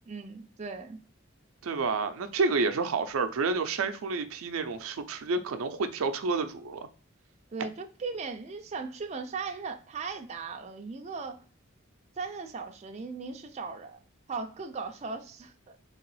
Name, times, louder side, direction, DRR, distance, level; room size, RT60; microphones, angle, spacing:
voice 1, 0.1-1.0 7.5-11.4 12.2-14.0 14.3-15.8, right 4 dB, 35° right, 0.4 m, -38 dB
voice 2, 1.6-6.8 7.6-7.7, right 4 dB, 90° right, 0.5 m, -29 dB
3.8 x 2.9 x 3.0 m
head